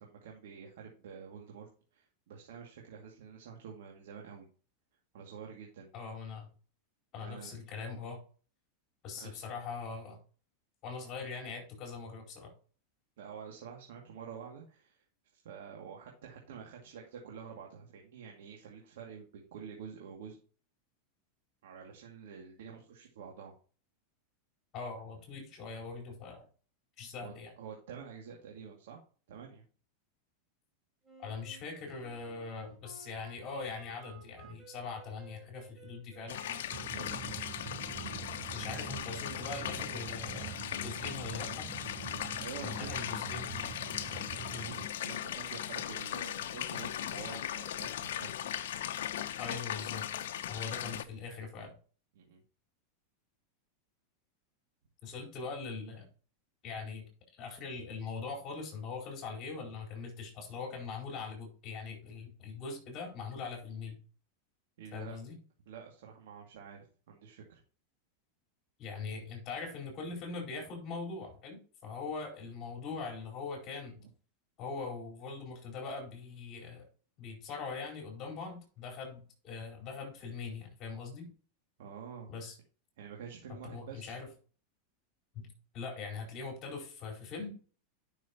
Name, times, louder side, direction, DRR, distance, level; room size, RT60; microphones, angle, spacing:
voice 1, 0.0-4.4 5.1-5.9 7.2-7.5 9.1-9.4 13.2-15.0 15.3-20.4 21.6-23.5 27.2-29.0 29.3-29.6 34.4-34.5 36.8-37.5 42.4-42.9 44.5-48.5 52.1-52.4 64.8-65.2 65.7-67.6 74.0-74.1 81.8-82.3 83.0-84.2, right 7 dB, 80° right, 0 dB, 2.2 m, -48 dB
voice 2, 5.9-6.5 7.1-8.2 9.0-10.2 10.8-12.5 24.7-26.4 27.0-27.5 31.2-36.6 38.5-40.5 40.8-41.7 42.6-43.8 44.5-44.7 49.4-50.1 50.5-51.7 55.0-56.0 56.6-57.0 57.3-64.0 64.9-65.3 68.8-74.0 74.6-76.9 77.2-81.3 82.3-82.6 83.5-84.3 85.3-85.5 85.7-87.5, left 4 dB, 40° left, 1 dB, 4.5 m, -42 dB
Wind instrument woodwind instrument, 31.0-40.5, right 2 dB, 10° right, 4.2 m, -57 dB
sound 1, 36.3-51.0, left 11 dB, 80° left, 0.8 m, -38 dB
sound 2, 36.7-44.9, right 11 dB, 40° right, 0.5 m, -45 dB
11.5 x 6.3 x 2.9 m, 0.39 s
supercardioid pair, 125°, 0 cm